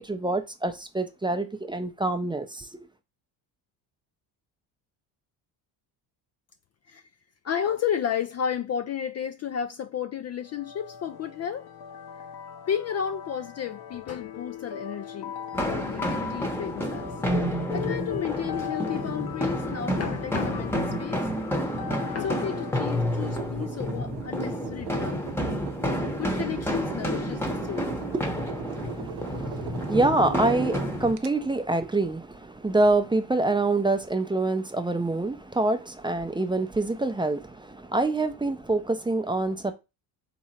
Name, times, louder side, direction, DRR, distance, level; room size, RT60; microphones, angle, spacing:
voice 1, 0.0-2.8 28.1-39.7, right 2 dB, 10° right, 0.5 m, -26 dB
voice 2, 7.4-11.7 12.2-12.3 12.6-17.2 17.7-21.3 22.1-25.3 26.1-28.0, left 8 dB, 40° left, 0.4 m, -32 dB
sound 1, 10.5-22.8, left 8 dB, 60° left, 0.8 m, -39 dB
sound 2, 15.5-31.1, equal, 5° left, 0.9 m, -30 dB
sound 3, 23.2-31.3, right 10 dB, 65° right, 0.7 m, -40 dB
3.6 x 3.0 x 4.3 m
supercardioid pair, 85°, 44 cm